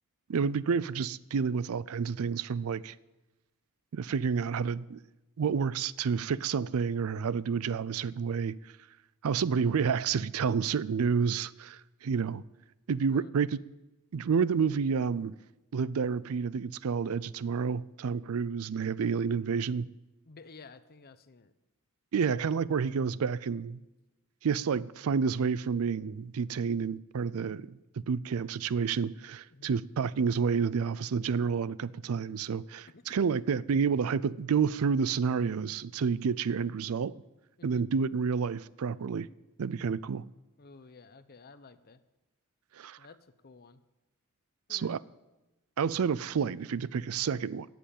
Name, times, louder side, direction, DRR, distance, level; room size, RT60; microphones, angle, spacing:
voice 1, 0.3-2.9 3.9-5.0 5.4-8.6 9.2-12.4 12.9-13.6 14.1-15.3 15.7-19.9 22.1-23.8 24.4-27.8 28.1-37.1 37.6-39.3 39.6-40.2 42.8-43.0 44.7-45.0 45.8-47.7, right 6 dB, 65° right, 0.4 m, -29 dB
voice 2, 20.2-21.5 29.5-29.7 32.9-33.4 37.6-37.8 40.6-42.0 43.0-43.8 44.7-44.9, left 4 dB, 45° left, 0.8 m, -53 dB
14.5 x 7.7 x 8.5 m
head